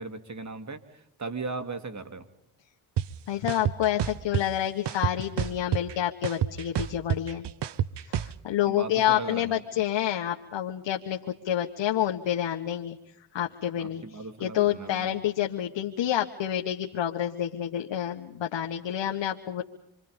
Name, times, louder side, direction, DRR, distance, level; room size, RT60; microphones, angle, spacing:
voice 1, 0.0-2.3 8.7-9.8 13.8-15.1, right 3 dB, 40° right, 8 dB, 3.1 m, -38 dB
sound 1, 3.0-3.1 3.5-4.4 4.9-5.9 6.2-8.3, right 10 dB, 65° right, 1.1 m, -27 dB
voice 2, 3.3-7.4 8.1-11.2 11.4-13.0 13.3-14.0 14.4-19.6, left 11 dB, 75° left, 2 dB, 1.7 m, -28 dB
28.0 x 24.0 x 5.4 m, 0.77 s
cardioid pair, 60°, 45 cm